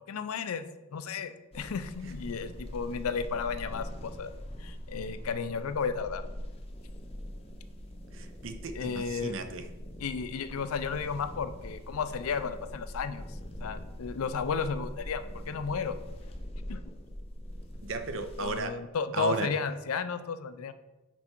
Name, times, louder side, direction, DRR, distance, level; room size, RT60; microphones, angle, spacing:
voice 1, 0.1-0.7 0.9-4.3 4.6-6.2 8.7-9.4 10.0-13.2 13.6-16.0 16.7-16.8 18.4-20.7, left 5 dB, 85° left, 12 dB, 0.4 m, -33 dB
sound 1, 1.5-18.6, equal, 25° left, 0.6 m, -42 dB
voice 2, 8.1-9.7 17.8-18.8 19.1-19.5, right 3 dB, 60° right, 9 dB, 0.6 m, -34 dB
6.1 x 4.5 x 4.5 m, 1.0 s
head